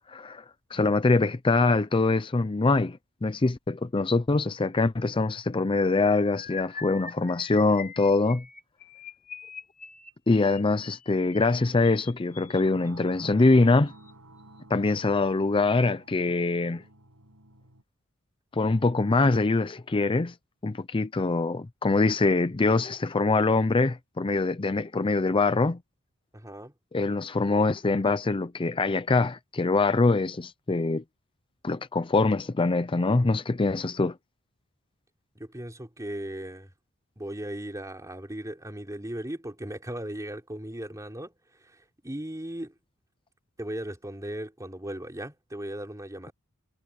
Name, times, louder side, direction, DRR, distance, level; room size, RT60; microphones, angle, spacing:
voice 1, 0.1-0.4 0.7-8.4 10.3-13.9 14.7-16.8 18.5-20.3 20.6-25.8 26.9-31.0 31.6-34.2, left 3 dB, 25° left, 0.5 m, -24 dB
sound 1, 5.9-13.1 13.9-14.1 14.4-14.6 14.9-15.1, left 6 dB, 40° left, 5.4 m, -44 dB
sound 2, 12.3-17.8, right 2 dB, 85° right, 7.9 m, -52 dB
voice 2, 26.3-26.7 35.4-36.7 37.2-41.3 41.6-42.7 43.6-46.3, right 1 dB, 15° right, 3.8 m, -37 dB
head